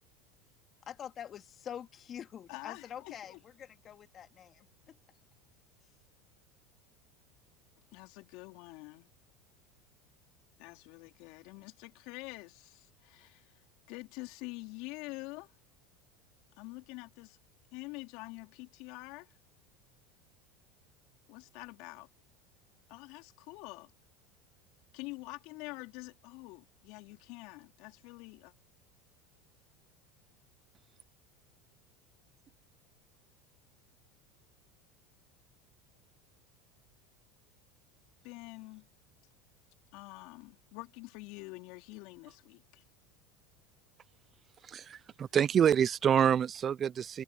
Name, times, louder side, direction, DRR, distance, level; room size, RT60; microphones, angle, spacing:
voice 1, 0.9-5.0, left 9 dB, 40° left, 3.0 m, -46 dB
voice 2, 2.5-3.4 7.9-9.1 10.6-15.5 16.6-17.4 17.7-19.3 21.3-22.1 22.9-23.9 24.9-28.5 38.2-38.9 39.9-42.8, left 24 dB, 65° left, 3.7 m, -46 dB
voice 3, 44.6-47.2, right 8 dB, 35° right, 0.3 m, -27 dB
supercardioid pair, 105°, 0 cm